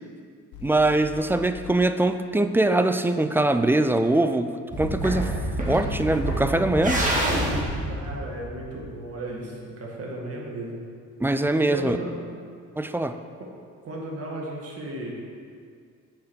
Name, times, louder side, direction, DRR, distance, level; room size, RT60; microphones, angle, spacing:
sound 1, 0.5-1.8, left 6 dB, 80° left, 0.6 m, -42 dB
voice 1, 0.6-4.5 4.8-5.3 5.7-7.1 11.2-12.0 12.8-13.2, right 2 dB, 10° right, 9 dB, 0.3 m, -22 dB
sound 2, 4.7-8.9, right 1 dB, 25° right, 1.9 m, -27 dB
voice 2, 7.9-10.8 11.7-12.1 13.8-15.1, right 1 dB, 50° right, -2 dB, 1.9 m, -35 dB
7.2 x 5.0 x 6.2 m, 2.2 s
cardioid pair, 90°, 30 cm